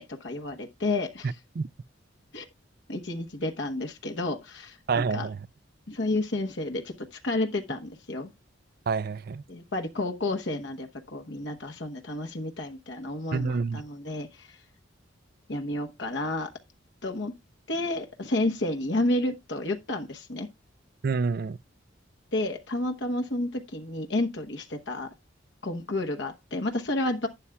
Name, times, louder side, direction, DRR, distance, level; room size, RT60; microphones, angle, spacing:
voice 1, 0.0-1.4 2.3-2.4 2.9-5.3 5.9-8.3 9.5-14.6 15.5-16.5 17.0-17.3 17.7-20.5 22.3-25.1 25.6-27.3, left 2 dB, 60° left, 1.1 m, -31 dB
voice 2, 4.9-5.4 8.9-9.4 13.3-13.8 21.0-21.6, right 4 dB, 50° right, 0.4 m, -27 dB
11.5 x 9.9 x 2.3 m
head